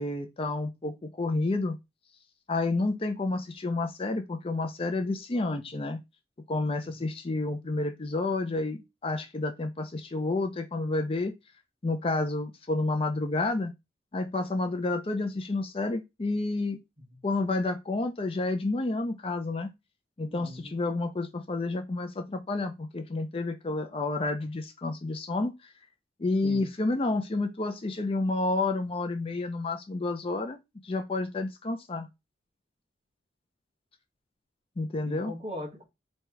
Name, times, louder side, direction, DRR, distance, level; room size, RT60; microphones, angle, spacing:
voice 1, 0.0-1.8 2.5-6.0 6.5-11.3 11.8-13.7 14.1-16.8 17.2-19.7 20.2-25.7 26.2-30.6 30.8-32.1 34.8-35.3, left 2 dB, 30° left, 0.5 m, -30 dB
voice 2, 20.2-20.7 26.4-26.7 35.1-35.8, equal, 30° right, 1.3 m, -39 dB
3.2 x 2.8 x 4.6 m
head